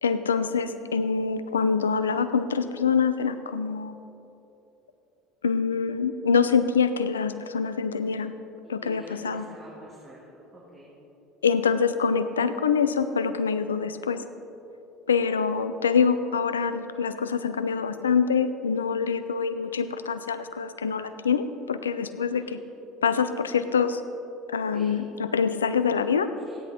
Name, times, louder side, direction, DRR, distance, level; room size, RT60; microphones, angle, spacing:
voice 1, 0.0-4.0 5.4-8.4 8.7-9.4 11.4-14.2 15.1-22.6 23.0-24.0 24.5-26.3, left 6 dB, 80° left, 12 dB, 0.5 m, -25 dB
voice 2, 8.6-10.9 22.3-22.6 24.7-25.0 26.3-26.6, equal, 25° right, -6 dB, 3.0 m, -46 dB
16.0 x 10.0 x 4.3 m, 2.9 s
figure-of-eight pair, 65°, 0 cm